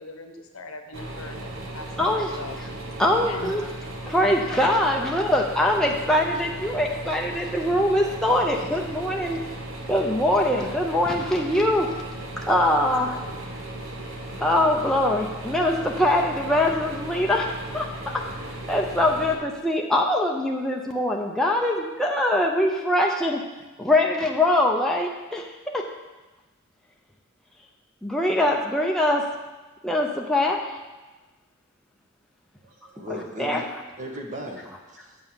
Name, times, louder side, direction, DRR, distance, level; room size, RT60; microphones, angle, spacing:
voice 1, 0.0-2.6 3.1-3.5 7.1-7.4 9.3-9.4 11.8-12.0, left 3 dB, 80° left, 5 dB, 1.1 m, -40 dB
sound 1, 0.9-19.4, right 1 dB, 65° right, 1.2 m, -36 dB
voice 2, 2.0-2.3 3.0-3.7 4.1-9.4 9.9-11.9 12.4-13.3 14.4-18.2 18.7-23.4 23.8-25.5 25.7-25.8 28.0-29.3 29.8-30.8 33.1-33.6, left 1 dB, ahead, -1 dB, 0.7 m, -23 dB
voice 3, 32.6-33.7 34.0-35.2, equal, 35° right, 0 dB, 1.4 m, -37 dB
8.0 x 5.5 x 7.2 m, 1.1 s
head